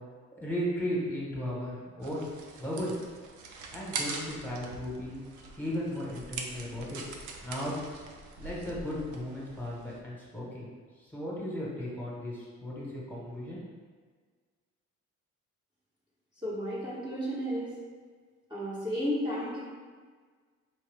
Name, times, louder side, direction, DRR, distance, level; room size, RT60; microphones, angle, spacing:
voice 1, 0.4-2.3 2.6-2.9 3.7-5.2 5.6-7.0 7.4-7.7 8.4-10.7 11.0-13.6, equal, 5° left, -6 dB, 1.3 m, -35 dB
sound 1, 2.0-10.0, right 3 dB, 80° right, 0.6 m, -42 dB
voice 2, 16.4-17.7 18.5-19.6, equal, 15° right, -10 dB, 1.1 m, -32 dB
4.6 x 2.7 x 3.4 m, 1.5 s
cardioid pair, 90°, 30 cm